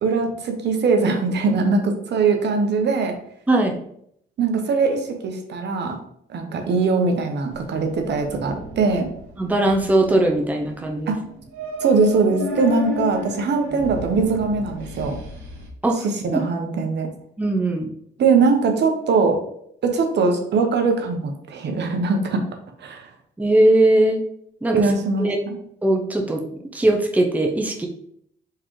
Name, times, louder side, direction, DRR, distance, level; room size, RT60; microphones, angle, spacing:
voice 1, 0.0-3.1 4.4-6.0 6.3-9.1 11.1-11.2 11.8-15.2 16.2-17.1 18.2-19.4 19.8-22.4 22.8-23.1 24.7-25.5, right 4 dB, 60° right, 5 dB, 0.9 m, -21 dB
sound 1, 7.5-15.7, left 2 dB, 90° right, 1.2 m, -33 dB
voice 2, 9.4-11.1 15.8-16.0 16.3-16.4 17.4-17.9 23.4-24.2 24.6-24.9 25.2-25.4 25.8-26.4 26.7-27.9, right 1 dB, 10° right, 2 dB, 0.7 m, -19 dB
4.6 x 3.6 x 3.2 m, 0.69 s
cardioid pair, 90°, 20 cm